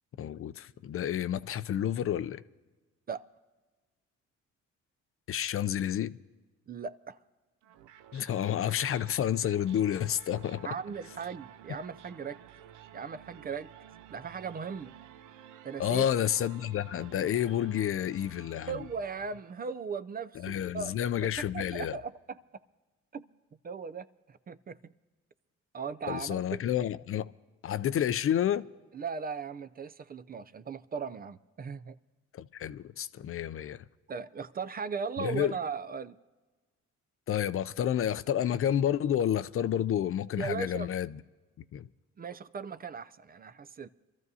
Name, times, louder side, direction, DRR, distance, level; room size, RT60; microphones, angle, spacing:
voice 1, 0.2-2.4 5.3-6.1 8.1-10.7 15.8-18.8 20.4-22.0 26.1-27.3 27.6-28.7 32.3-33.8 35.2-35.6 37.3-41.2 41.6-41.9, left 10 dB, 45° left, 0.4 m, -30 dB
voice 2, 6.7-7.2 10.6-12.4 12.9-13.7 14.1-14.9 15.6-16.0 18.7-21.0 21.5-22.4 23.1-23.2 23.6-24.9 25.7-26.6 28.9-32.0 34.1-36.2 40.4-40.9 42.2-43.9, right 5 dB, 30° right, 0.4 m, -38 dB
sound 1, 7.6-19.8, right 10 dB, 80° right, 0.6 m, -53 dB
24.5 x 13.5 x 2.7 m
cardioid pair, 90°, 30 cm